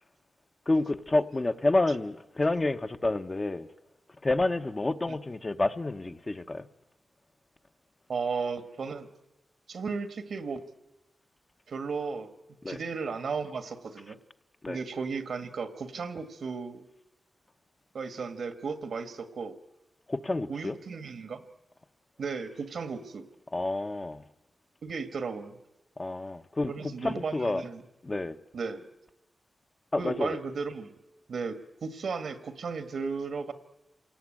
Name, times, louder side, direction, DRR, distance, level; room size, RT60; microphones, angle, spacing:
voice 1, 0.7-3.7 4.2-6.7 12.6-12.8 14.6-14.8 20.1-20.8 23.5-24.2 26.0-26.7 27.0-27.6 28.0-28.4 29.9-30.4, left 2 dB, 30° left, 7 dB, 1.0 m, -29 dB
voice 2, 8.1-9.1 9.7-10.6 11.7-12.3 12.7-14.2 14.7-16.9 17.9-19.6 20.5-21.4 22.2-23.3 24.8-25.6 26.7-27.8 28.5-28.9 30.0-30.9 31.3-33.5, right 5 dB, 75° right, 10 dB, 1.7 m, -35 dB
27.0 x 18.5 x 9.0 m, 1.0 s
cardioid pair, 75°, 0 cm